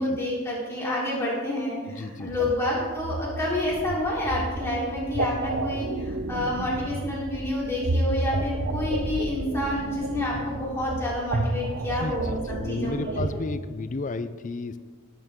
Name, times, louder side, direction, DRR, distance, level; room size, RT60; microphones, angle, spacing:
voice 1, 0.0-13.4, left 1 dB, 10° left, -7 dB, 3.7 m, -29 dB
voice 2, 1.9-2.5 11.5-11.6 12.0-14.8, left 3 dB, 35° left, 12 dB, 0.4 m, -33 dB
sound 1, 2.3-13.3, right 2 dB, 50° right, 0.7 m, -31 dB
17.5 x 8.2 x 3.7 m, 1.5 s
head